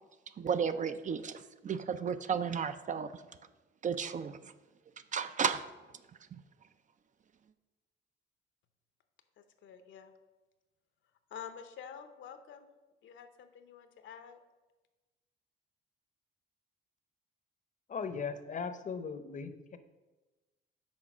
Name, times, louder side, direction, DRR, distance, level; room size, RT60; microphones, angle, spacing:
voice 1, 0.4-3.1 3.8-4.5 5.1-5.7 6.3-6.4, right 6 dB, 40° right, 11 dB, 0.4 m, -33 dB
voice 2, 9.6-10.1 11.3-12.7 13.0-14.4, left 8 dB, 70° left, 9 dB, 0.8 m, -48 dB
voice 3, 17.9-19.8, left 5 dB, 40° left, 10 dB, 0.7 m, -38 dB
6.2 x 4.3 x 5.9 m, 1.2 s
cardioid pair, 90°, 20 cm